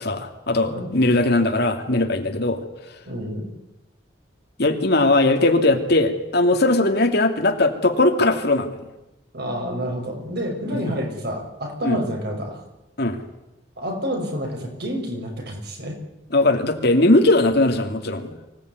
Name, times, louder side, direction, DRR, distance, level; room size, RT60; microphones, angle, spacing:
voice 1, 0.0-2.6 4.6-8.7 11.8-12.0 13.0-13.2 16.3-18.4, left 2 dB, 60° left, 6 dB, 2.7 m, -19 dB
voice 2, 0.7-1.0 3.1-3.5 9.3-12.6 13.8-16.0, equal, 60° right, 3 dB, 6.4 m, -29 dB
24.5 x 17.5 x 9.6 m, 0.95 s
head